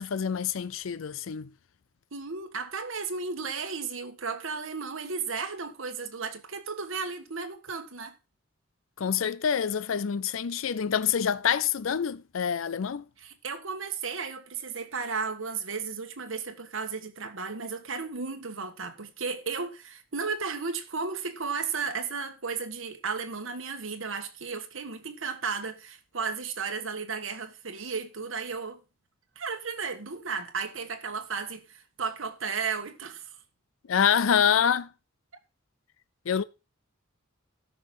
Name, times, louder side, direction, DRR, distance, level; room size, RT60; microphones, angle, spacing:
voice 1, 0.0-1.5 9.0-13.1 33.9-34.9 36.3-36.4, left 7 dB, 80° left, 0.5 m, -26 dB
voice 2, 2.1-8.1 13.2-28.8 29.3-33.4, right 5 dB, 75° right, 1.5 m, -34 dB
13.0 x 5.8 x 5.4 m
head